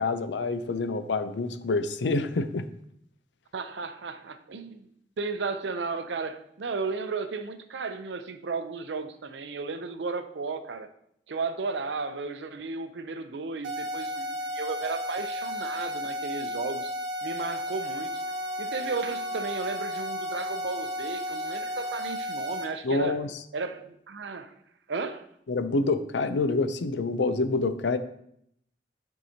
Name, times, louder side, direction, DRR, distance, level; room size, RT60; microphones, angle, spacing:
voice 1, 0.0-2.7 22.8-23.3 25.5-28.0, left 3 dB, 90° left, 0.5 m, -27 dB
voice 2, 3.5-4.9 5.2-10.9 11.3-16.9 17.2-18.2 18.6-23.2 23.5-24.5 24.9-25.2, right 4 dB, 85° right, 0.6 m, -34 dB
sound 1, 13.6-22.6, equal, 70° right, 1.0 m, -33 dB
Wind instrument woodwind instrument, 17.7-22.0, left 1 dB, 35° left, 2.2 m, -50 dB
9.1 x 4.7 x 2.8 m
head